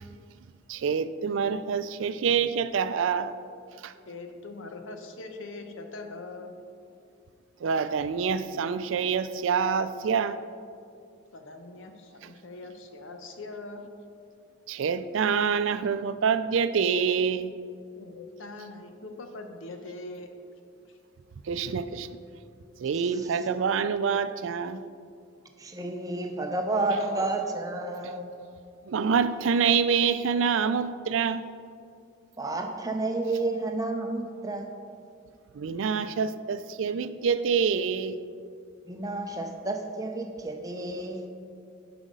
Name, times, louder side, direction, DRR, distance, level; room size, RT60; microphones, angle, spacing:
voice 1, 0.7-3.4 3.8-3.9 7.6-10.4 12.2-12.3 14.7-17.5 21.5-22.1 22.8-24.8 28.9-31.4 35.5-38.2, right 6 dB, 75° right, 13 dB, 0.4 m, -26 dB
voice 2, 4.1-6.6 11.3-13.8 18.0-20.3, left 2 dB, 80° left, 5 dB, 0.9 m, -42 dB
voice 3, 25.6-28.3 32.4-34.7 38.9-41.3, right 2 dB, 20° right, 3 dB, 0.6 m, -30 dB
10.0 x 5.0 x 5.3 m, 2.4 s
head